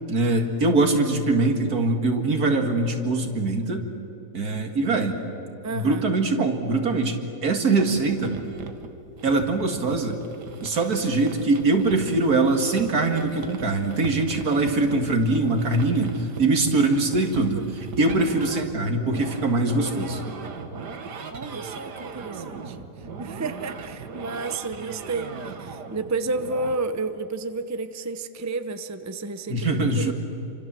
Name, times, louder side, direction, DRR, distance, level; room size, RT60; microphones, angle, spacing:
voice 1, 0.1-3.9 4.3-5.2 5.7-8.4 9.2-10.2 10.6-20.2 29.5-30.1, right 2 dB, 65° right, 5 dB, 2.6 m, -23 dB
voice 2, 5.6-6.1 17.5-17.7 21.3-22.9 23.2-30.1, right 3 dB, 20° right, 10 dB, 0.5 m, -31 dB
sound 1, 7.8-26.7, right 4 dB, 90° right, 2.1 m, -39 dB
28.5 x 25.0 x 7.6 m, 3.0 s
omnidirectional pair, 1.7 m